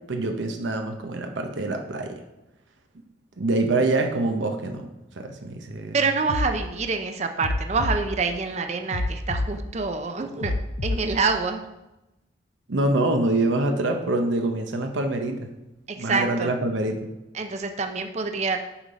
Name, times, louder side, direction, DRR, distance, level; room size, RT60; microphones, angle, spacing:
voice 1, 0.1-2.2 3.4-4.9 5.2-6.0 12.7-15.5 16.0-17.0, right 2 dB, 80° right, 4 dB, 0.8 m, -25 dB
voice 2, 5.9-10.5 10.8-11.6 15.9-16.5 17.3-18.6, right 4 dB, 35° right, 6 dB, 0.5 m, -26 dB
sound 1, 6.3-6.5 7.4-8.0 8.9-9.5 10.4-11.0, left 2 dB, 80° left, 0.6 m, -26 dB
7.0 x 5.5 x 5.0 m, 0.96 s
head